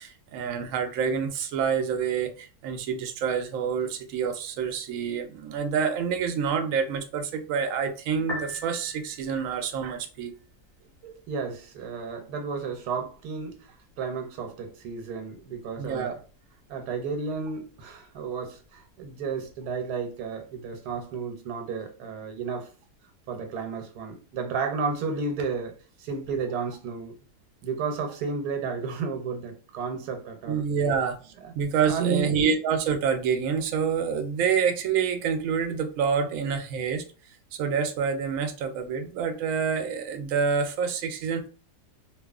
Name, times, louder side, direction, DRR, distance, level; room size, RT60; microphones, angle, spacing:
voice 1, 0.0-10.3 11.0-11.2 15.8-16.2 30.5-37.0 37.5-41.5, right 6 dB, 70° right, 0.9 m, -27 dB
Piano, 8.1-21.2, left 1 dB, 5° left, 0.3 m, -48 dB
voice 2, 11.3-16.2 16.7-22.7 23.3-27.1 27.6-30.6 31.4-31.5 31.9-32.4, right 5 dB, 85° right, 1.2 m, -32 dB
2.8 x 2.3 x 2.3 m
omnidirectional pair, 1.7 m